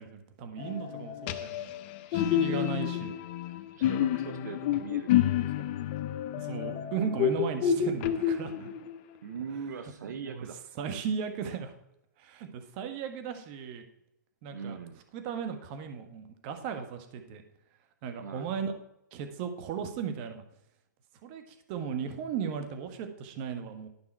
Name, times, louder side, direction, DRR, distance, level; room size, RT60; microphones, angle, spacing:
voice 1, 0.0-1.7 2.1-3.1 6.4-8.7 10.0-10.5 10.8-11.7 12.2-13.8 14.4-14.8 15.1-17.4 18.0-18.7 19.1-20.4 21.2-23.9, right 7 dB, 35° right, 7 dB, 1.3 m, -36 dB
sound 1, 0.6-9.0, left 10 dB, 35° left, 0.7 m, -29 dB
voice 2, 3.7-5.7 9.2-10.6 14.5-15.0 18.2-18.5, right 6 dB, 65° right, 8 dB, 0.9 m, -41 dB
11.5 x 5.5 x 4.4 m, 0.83 s
hypercardioid pair, 140°, 10 cm